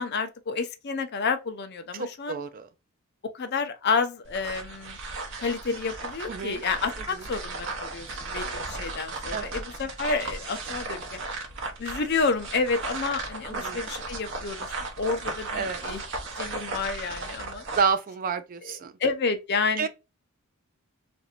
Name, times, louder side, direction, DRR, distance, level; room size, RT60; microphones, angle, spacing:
voice 1, 0.0-2.4 3.3-5.0 5.4-11.2 11.8-16.0 16.4-17.6 18.6-19.9, left 4 dB, 50° left, 0.5 m, -30 dB
voice 2, 1.9-2.7 6.3-6.6 9.3-9.5 13.5-13.8 15.5-15.8 17.8-18.9 19.8-19.9, right 5 dB, 40° right, 0.3 m, -29 dB
sound 1, 4.2-17.9, right 3 dB, 55° right, 0.8 m, -36 dB
3.2 x 2.6 x 2.8 m
head